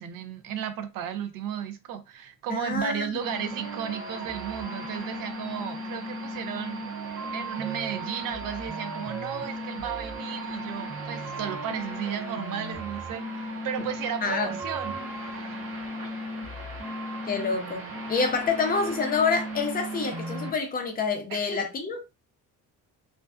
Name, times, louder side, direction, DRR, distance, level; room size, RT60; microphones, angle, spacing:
voice 1, 0.0-6.8 7.3-15.2 15.5-15.6 21.3-21.7, right 9 dB, 90° right, 0.6 m, -34 dB
voice 2, 2.5-3.2 14.2-14.5 17.2-22.1, left 4 dB, 30° left, 0.4 m, -27 dB
sound 1, 3.2-20.5, right 1 dB, 45° right, 1.0 m, -36 dB
2.5 x 2.3 x 2.3 m
cardioid pair, 175°, 32 cm